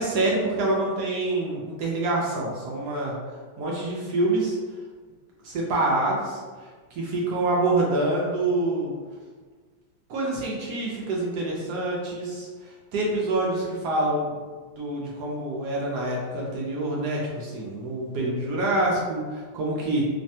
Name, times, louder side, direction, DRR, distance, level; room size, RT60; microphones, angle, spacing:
voice 1, 0.0-3.1 3.6-4.6 5.4-8.9 10.1-14.3 14.8-20.0, right 2 dB, 75° right, -3 dB, 0.9 m, -26 dB
3.2 x 2.1 x 2.6 m, 1.4 s
omnidirectional pair, 2.1 m